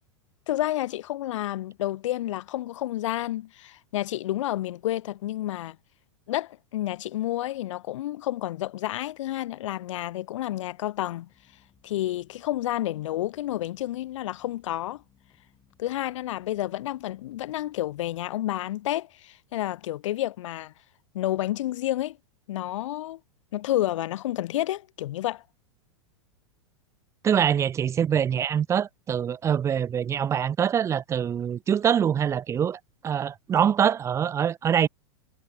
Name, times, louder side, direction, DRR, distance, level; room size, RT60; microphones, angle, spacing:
voice 1, 0.5-5.8 6.3-11.3 11.8-15.0 15.8-20.7 21.1-22.2 22.5-23.2 23.5-25.4, left 14 dB, 70° left, 0.7 m, -30 dB
sound 1, 11.3-18.3, left 9 dB, 25° left, 7.4 m, -64 dB
voice 2, 27.2-34.9, right 8 dB, 15° right, 0.4 m, -24 dB
hypercardioid pair, 120°, 16 cm